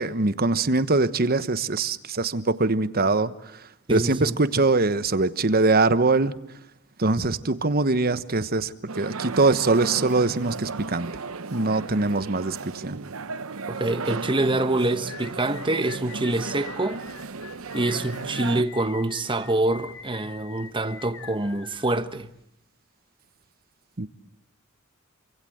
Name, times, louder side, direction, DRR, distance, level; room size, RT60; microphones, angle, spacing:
voice 1, 0.0-6.3 7.0-11.2 11.5-13.0 24.0-24.1, right 3 dB, 45° right, 1.2 m, -23 dB
voice 2, 3.9-4.3 7.2-7.3 13.7-17.0 17.7-22.3, right 2 dB, 25° right, 1.2 m, -26 dB
sound 1, 8.9-18.6, right 4 dB, 75° right, 1.0 m, -35 dB
sound 2, 15.1-22.4, left 7 dB, 65° left, 1.4 m, -45 dB
27.0 x 25.5 x 7.9 m
head